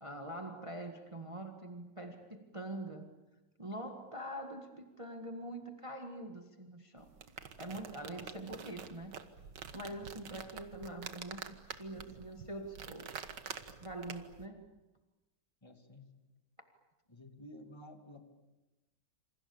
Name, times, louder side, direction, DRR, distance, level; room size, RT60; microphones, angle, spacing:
voice 1, 0.0-3.1 3.6-7.1 7.6-9.1 9.7-13.1 13.8-14.7, right 1 dB, 20° right, 5 dB, 1.8 m, -44 dB
sound 1, 7.0-14.5, right 7 dB, 75° right, 2.1 m, -48 dB
voice 2, 15.6-16.2 17.1-18.2, left 1 dB, 15° left, 5 dB, 2.5 m, -52 dB
27.5 x 27.5 x 7.2 m, 1.1 s
omnidirectional pair, 1.9 m